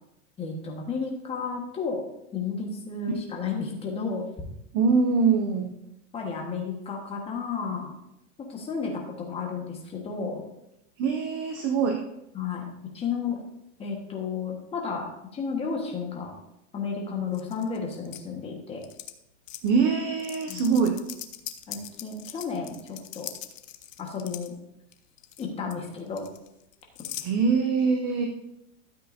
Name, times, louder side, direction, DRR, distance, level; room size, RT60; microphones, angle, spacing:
voice 1, 0.4-2.0 2.3-4.2 6.1-7.9 8.4-10.4 12.3-13.4 13.8-15.1 15.3-16.4 16.7-18.9 20.5-20.6 21.7-23.3 24.0-24.6 25.4-26.3, left 5 dB, 15° left, 1 dB, 1.3 m, -32 dB
voice 2, 4.7-5.7 11.0-12.0 19.6-21.0 27.2-28.3, right 5 dB, 20° right, 4 dB, 0.4 m, -23 dB
sound 1, 17.3-18.2 18.8-19.1 19.5-19.7 20.2-24.5 24.9-25.5 25.7-27.3, left 12 dB, 75° left, 1.0 m, -40 dB
13.0 x 7.9 x 2.6 m, 0.85 s
supercardioid pair, 160°, 39 cm